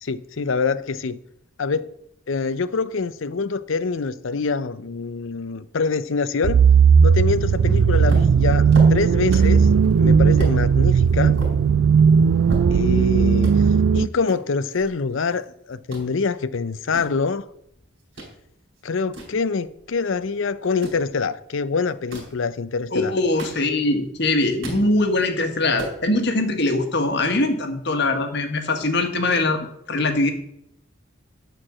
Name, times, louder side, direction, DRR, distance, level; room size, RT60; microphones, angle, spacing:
voice 1, 0.0-1.2 1.6-1.9 2.3-6.6 7.0-8.6 8.9-9.7 10.0-11.4 12.7-13.5 13.9-17.4 18.8-23.1, left 4 dB, 70° left, 0.5 m, -25 dB
sound 1, 6.4-14.1, right 6 dB, 85° right, 0.3 m, -16 dB
sound 2, 8.1-9.6 10.0-10.1 10.4-10.6 11.1-13.1 13.4-13.5 14.3-15.4 15.7-16.1 16.6-18.3 18.7-20.0 20.6-21.0 21.9-22.4 23.0-24.0 24.3-24.9 25.3-25.4 25.6-26.0, right 1 dB, 65° right, 4.1 m, -35 dB
voice 2, 22.9-30.3, left 2 dB, 55° left, 1.4 m, -22 dB
11.5 x 4.6 x 7.3 m
head